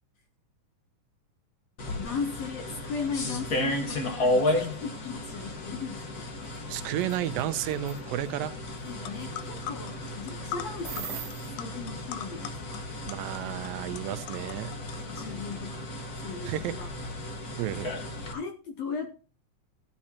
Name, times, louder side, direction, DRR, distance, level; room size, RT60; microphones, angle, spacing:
sound 1, 1.8-18.3, left 1 dB, 40° left, 1.4 m, -34 dB
voice 1, 1.9-6.3 8.8-11.3 11.6-12.8 15.2-15.9 16.2-16.9 18.3-19.1, left 5 dB, 70° left, 6 dB, 1.6 m, -37 dB
voice 2, 6.7-8.6 13.1-14.7 16.5-16.8 17.6-17.9, right 12 dB, 90° right, 10 dB, 2.5 m, -32 dB
sound 2, 7.0-7.2 7.7-8.0 10.8-11.5, right 10 dB, 65° right, 2.0 m, -38 dB
sound 3, 8.7-8.8 9.0-15.6, left 10 dB, 90° left, 2.8 m, -42 dB
16.5 x 8.7 x 2.9 m, 0.36 s
omnidirectional pair, 3.9 m